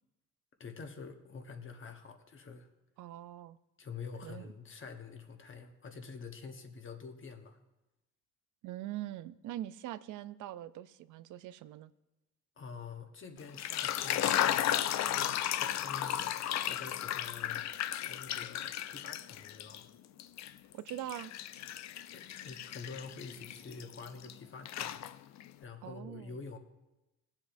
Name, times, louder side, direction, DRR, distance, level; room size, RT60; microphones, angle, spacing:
voice 1, 0.6-2.7 3.8-7.6 12.6-14.8 15.5-16.3 16.6-17.6 18.0-19.9 22.1-25.3 25.6-26.6, left 5 dB, 40° left, 1.1 m, -47 dB
voice 2, 3.0-3.6 4.2-4.5 8.6-11.9 20.7-21.3 25.8-26.4, right 13 dB, 80° right, 0.4 m, -43 dB
sound 1, 13.4-19.8 20.2-24.3 24.6-25.5, left 11 dB, 65° left, 0.5 m, -34 dB
16.5 x 7.3 x 2.6 m
cardioid pair, 90°, 30 cm